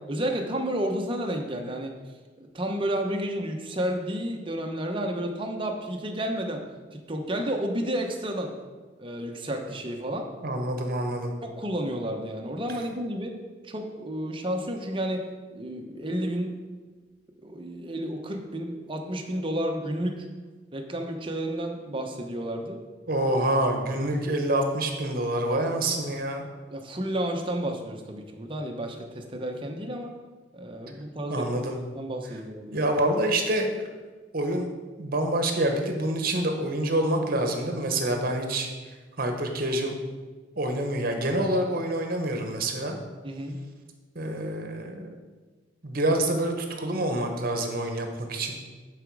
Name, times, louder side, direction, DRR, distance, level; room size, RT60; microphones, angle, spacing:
voice 1, 0.1-2.0 2.4-6.6 6.9-8.5 9.0-10.3 11.4-13.3 13.6-15.2 15.5-16.5 17.4-20.3 20.7-22.8 26.7-30.1 30.5-31.6 31.9-32.8 43.2-43.6, right 1 dB, 25° right, 3 dB, 1.0 m, -31 dB
voice 2, 10.4-11.3 23.1-26.5 31.3-31.8 32.7-33.7 34.3-34.7 35.0-38.7 39.2-39.9 40.5-43.0 44.1-45.2 45.8-48.6, right 1 dB, 50° right, 4 dB, 1.2 m, -27 dB
11.0 x 5.0 x 4.8 m, 1.4 s
head